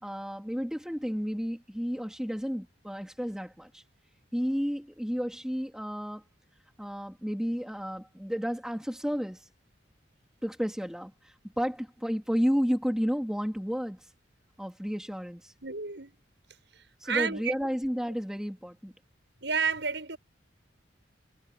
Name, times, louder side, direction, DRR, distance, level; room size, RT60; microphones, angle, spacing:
voice 1, 0.0-3.8 4.3-6.2 6.8-9.4 10.4-14.0 14.6-15.5 17.0-18.9, equal, 5° right, 3.4 m, -32 dB
voice 2, 15.6-16.1 17.1-17.5 19.4-20.2, right 5 dB, 75° right, 7.3 m, -30 dB
head